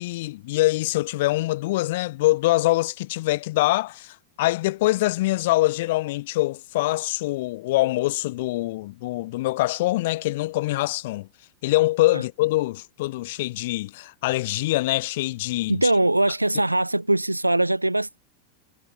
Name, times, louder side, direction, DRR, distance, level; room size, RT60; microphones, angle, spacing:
voice 1, 0.0-11.3 11.6-15.9, left 18 dB, 50° left, 3.6 m, -24 dB
voice 2, 15.7-18.2, right 1 dB, 85° right, 2.4 m, -21 dB
figure-of-eight pair, 90°, 0 cm